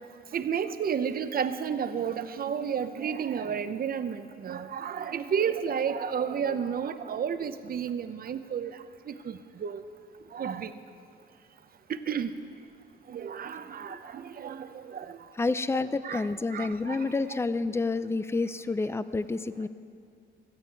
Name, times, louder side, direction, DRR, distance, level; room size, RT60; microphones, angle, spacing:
voice 1, 0.3-8.7 9.1-9.8 10.3-10.7 11.9-12.3 13.1-15.2 16.0-16.3 16.5-17.0, right 7 dB, 50° right, 11 dB, 0.8 m, -31 dB
voice 2, 15.4-19.7, left 3 dB, 15° left, 14 dB, 0.5 m, -29 dB
16.5 x 14.5 x 4.7 m, 2.5 s
cardioid pair, 90°, 20 cm